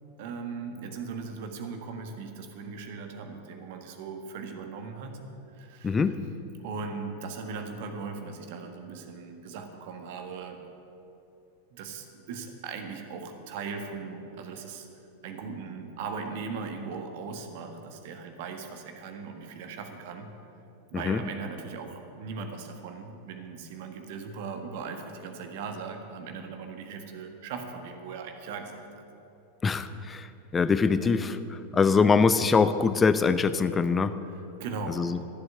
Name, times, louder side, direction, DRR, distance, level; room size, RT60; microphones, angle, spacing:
voice 1, 0.2-5.2 5.5-6.2 6.6-10.6 11.7-14.9 15.2-20.3 20.9-29.0 34.2-35.1, right 5 dB, 50° right, 5 dB, 1.5 m, -39 dB
voice 2, 5.8-6.1 20.9-21.2 29.6-30.3 30.5-34.1 34.9-35.2, left 5 dB, 15° left, 12 dB, 0.6 m, -23 dB
13.5 x 8.0 x 9.7 m, 2.8 s
figure-of-eight pair, 90°, 0 cm